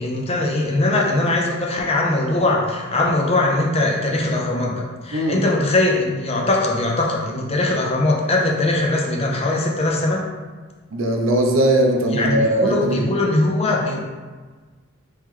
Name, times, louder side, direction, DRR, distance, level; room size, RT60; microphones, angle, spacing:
voice 1, 0.0-10.2 12.1-14.0, left 2 dB, 30° left, -1 dB, 0.5 m, -21 dB
voice 2, 5.1-5.5 10.9-13.1, right 1 dB, 80° right, 2 dB, 0.5 m, -19 dB
3.1 x 3.1 x 3.6 m, 1.4 s
head